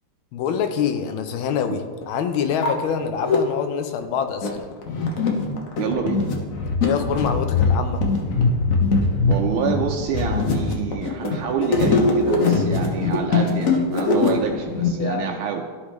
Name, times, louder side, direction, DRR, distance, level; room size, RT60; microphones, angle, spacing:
voice 1, 0.3-4.7 6.8-8.0 15.0-15.4, left 7 dB, 85° left, 7 dB, 1.5 m, -25 dB
sound 1, 1.2-1.3 2.0-2.1 2.4-3.4 4.0-14.9, left 4 dB, 50° left, 1.1 m, -21 dB
voice 2, 5.8-6.3 9.3-15.7, right 7 dB, 85° right, 1 dB, 1.5 m, -27 dB
13.0 x 5.0 x 3.1 m, 1.4 s
omnidirectional pair, 2.3 m